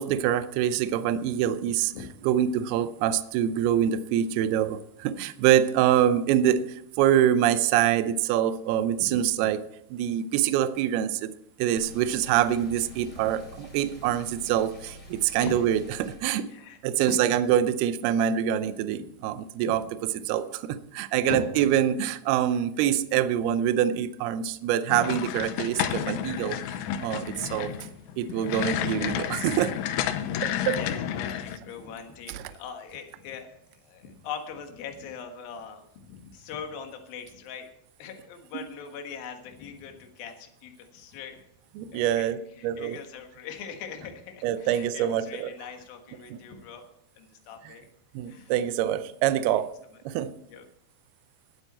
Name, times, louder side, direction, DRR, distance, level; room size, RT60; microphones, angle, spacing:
voice 1, 0.0-1.9 2.2-9.6 9.9-11.3 11.6-16.5 16.8-19.8 20.3-27.7 28.2-29.7 30.4-30.8 32.3-32.4 41.8-42.4 42.6-43.0 44.4-45.5 46.3-46.4 48.1-49.7 50.1-50.3, right 10 dB, 85° right, 12 dB, 2.2 m, -25 dB
sound 1, 11.8-16.2, equal, 15° left, 2.9 m, -46 dB
voice 2, 16.5-17.3 19.7-19.8 21.2-21.6 27.3-27.4 30.2-37.7 38.0-41.4 41.8-46.8 47.2-47.9 48.3-48.5 49.5-49.6 50.5-50.7, left 6 dB, 65° left, 5 dB, 2.8 m, -41 dB
sound 2, 24.9-31.6, left 10 dB, 80° left, 2.9 m, -31 dB
20.5 x 8.1 x 4.2 m, 0.78 s
omnidirectional pair, 5.4 m